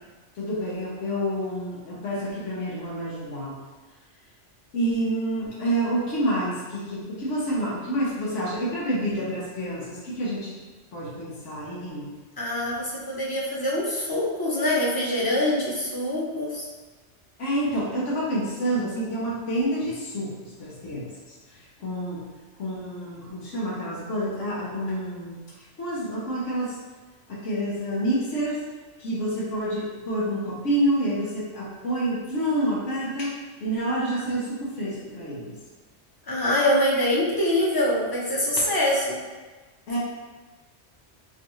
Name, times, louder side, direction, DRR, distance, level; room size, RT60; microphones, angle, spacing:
voice 1, 0.4-3.6 4.7-10.5 10.9-12.1 17.4-20.3 20.6-21.1 21.8-22.2 22.6-25.4 25.8-26.7 27.3-28.6 29.0-33.3 33.6-35.6 39.9-40.0, right 1 dB, 90° left, -5 dB, 1.3 m, -28 dB
voice 2, 12.4-16.7 36.3-39.2, left 1 dB, 25° left, -5 dB, 0.6 m, -24 dB
4.6 x 2.5 x 3.0 m, 1.3 s
omnidirectional pair, 1.2 m